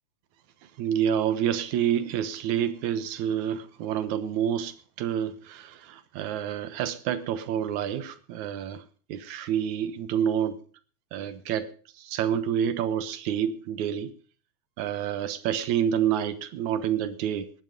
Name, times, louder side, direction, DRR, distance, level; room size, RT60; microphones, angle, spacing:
voice 1, 0.8-8.8 9.1-10.6 11.1-11.7 12.0-14.1 14.8-17.5, right 9 dB, 75° right, 13 dB, 2.5 m, -28 dB
19.0 x 10.5 x 5.2 m, 0.40 s
omnidirectional pair, 3.4 m